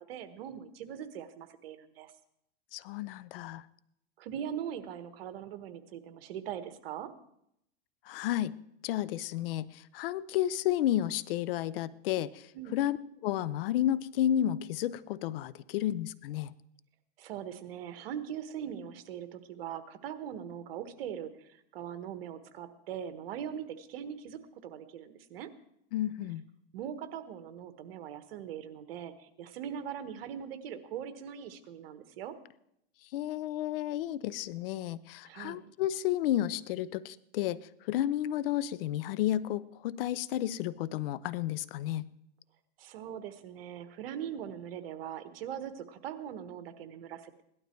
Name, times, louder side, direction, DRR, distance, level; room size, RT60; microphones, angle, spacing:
voice 1, 0.1-2.1 4.2-7.1 12.5-12.7 17.2-25.5 26.7-32.3 35.2-35.6 42.8-47.4, right 9 dB, 70° right, 11 dB, 1.4 m, -41 dB
voice 2, 2.7-3.7 8.0-8.5 8.8-13.0 13.2-16.5 25.9-26.5 33.0-42.1, left 12 dB, 65° left, 18 dB, 0.7 m, -32 dB
17.0 x 12.0 x 4.5 m, 0.76 s
supercardioid pair, 135°, 30 cm